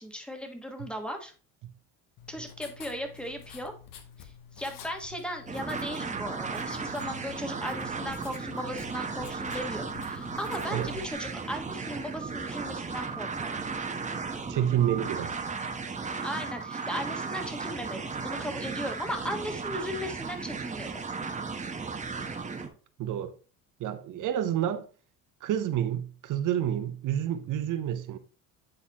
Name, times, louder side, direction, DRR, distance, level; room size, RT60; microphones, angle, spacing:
voice 1, 0.0-1.3 2.3-3.7 4.2-4.3 4.6-13.6 16.2-21.0, equal, 5° left, 1.4 m, -37 dB
Writing, 2.2-11.1, left 7 dB, 65° left, 1.2 m, -49 dB
sound 1, 5.5-22.7, right 4 dB, 20° right, 1.0 m, -35 dB
voice 2, 14.5-15.4 23.0-23.4 23.8-24.9 25.4-28.2, right 10 dB, 55° right, 0.8 m, -29 dB
9.9 x 4.0 x 2.9 m
supercardioid pair, 100°, 37 cm